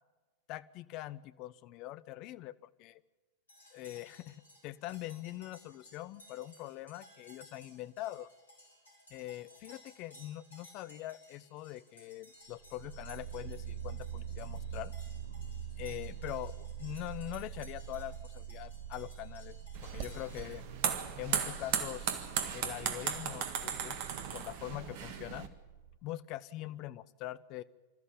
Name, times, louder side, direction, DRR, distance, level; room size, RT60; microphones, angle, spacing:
voice 1, 0.5-3.0 3.7-4.4 4.6-8.3 9.1-14.9 15.8-19.6 19.8-20.6 21.2-22.3 22.5-24.0 24.3-25.5 26.0-27.6, left 15 dB, 40° left, 16 dB, 0.8 m, -43 dB
sound 1, 3.5-20.4, left 1 dB, 75° left, 5.6 m, -59 dB
sound 2, 12.5-26.0, right 9 dB, 65° right, 0.9 m, -45 dB
sound 3, 19.7-25.5, right 8 dB, 50° right, 1.7 m, -36 dB
26.0 x 14.0 x 8.7 m, 1.2 s
figure-of-eight pair, 90°, 0 cm